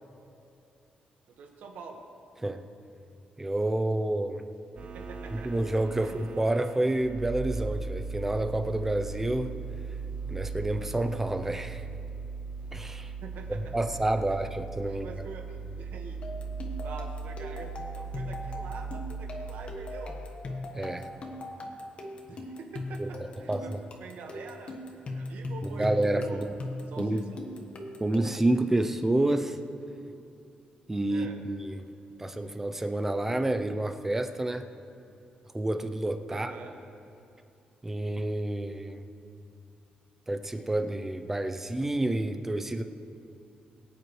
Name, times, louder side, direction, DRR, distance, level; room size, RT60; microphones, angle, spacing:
voice 1, 1.4-2.0 4.9-5.5 6.0-6.2 13.2-13.7 14.8-16.2 16.8-20.1 22.2-23.7 24.0-26.5 26.9-27.4 31.1-31.3 36.3-36.7, right 4 dB, 75° right, 3 dB, 1.5 m, -45 dB
voice 2, 3.4-4.5 5.3-9.5 10.3-11.8 12.7-13.1 13.7-15.1 20.7-21.1 23.0-23.1 23.5-23.8 25.7-26.5 27.0-27.2 28.0-29.6 30.9-31.9 32.2-34.7 35.5-36.5 37.8-39.1 40.3-42.8, right 1 dB, 10° right, 7 dB, 0.6 m, -29 dB
sound 1, 4.8-19.7, right 4 dB, 45° right, 0.8 m, -38 dB
sound 2, 16.2-28.5, left 2 dB, 40° left, 1.3 m, -39 dB
22.0 x 8.9 x 3.2 m, 2.7 s
cardioid pair, 145°, 3 cm